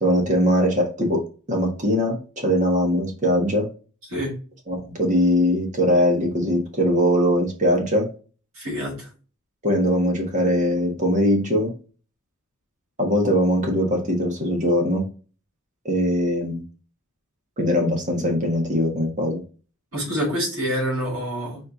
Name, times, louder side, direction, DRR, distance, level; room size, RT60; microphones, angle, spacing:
voice 1, 0.0-3.7 4.7-8.1 9.6-11.7 13.0-15.0 15.8-16.6 17.6-19.4, equal, 35° right, 1 dB, 1.3 m, -21 dB
voice 2, 8.6-9.1 19.9-21.6, equal, 70° right, -4 dB, 2.4 m, -26 dB
4.3 x 2.8 x 4.0 m, 0.36 s
head